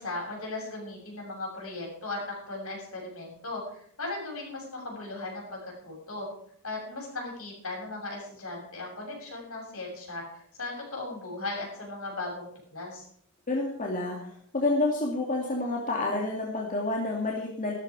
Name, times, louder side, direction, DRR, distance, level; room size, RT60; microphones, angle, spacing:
voice 1, 0.0-5.6 5.8-6.3 6.6-13.1, left 2 dB, 70° left, -1 dB, 7.2 m, -37 dB
voice 2, 13.5-17.8, left 2 dB, 40° left, -1 dB, 2.5 m, -29 dB
15.0 x 13.0 x 4.9 m, 0.63 s
head